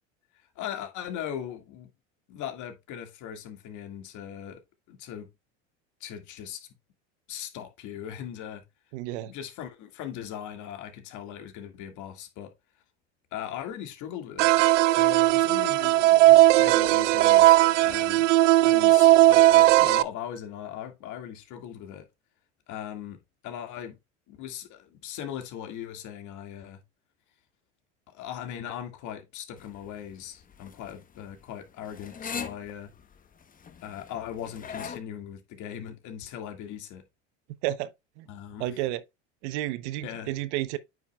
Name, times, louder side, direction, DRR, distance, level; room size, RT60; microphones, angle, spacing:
voice 1, 0.6-1.9 2.3-4.6 4.9-5.3 6.0-6.7 7.3-8.6 9.2-12.5 13.3-14.5 14.9-18.3 18.6-22.1 22.7-24.0 24.3-26.8 28.1-32.9 33.8-37.0 38.3-38.8 40.0-40.3, left 10 dB, 55° left, 2.0 m, -39 dB
voice 2, 8.9-9.3 37.6-37.9 38.2-38.3 38.6-39.0 39.4-40.8, right 15 dB, 70° right, 0.9 m, -31 dB
sound 1, 14.4-20.0, right 16 dB, 85° right, 0.5 m, -18 dB
sound 2, 29.6-35.0, left 6 dB, 25° left, 1.0 m, -41 dB
9.0 x 5.7 x 2.3 m
hypercardioid pair, 95°, 36 cm